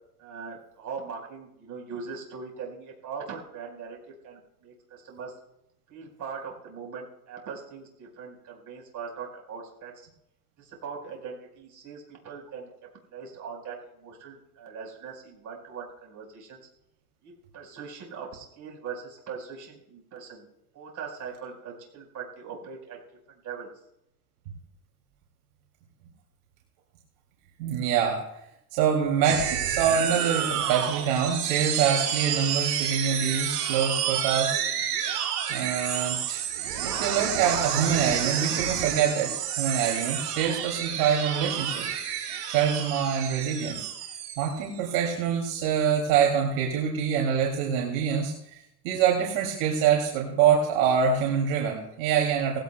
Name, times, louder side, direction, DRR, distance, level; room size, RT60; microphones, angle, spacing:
voice 1, 0.2-5.4 5.9-10.1 10.6-12.7 13.1-16.6 17.2-20.5 20.7-23.0 23.3-23.8, right 5 dB, 35° right, 0 dB, 4.8 m, -41 dB
voice 2, 27.6-28.2 28.7-34.6 35.5-36.4 36.8-41.9 42.5-43.9 44.4-48.3 48.8-52.6, right 7 dB, 65° right, 0 dB, 2.9 m, -25 dB
sound 1, 29.2-45.0, right 9 dB, 80° right, 4.3 m, -30 dB
19.5 x 16.0 x 2.3 m, 0.80 s
hypercardioid pair, 110°, 48 cm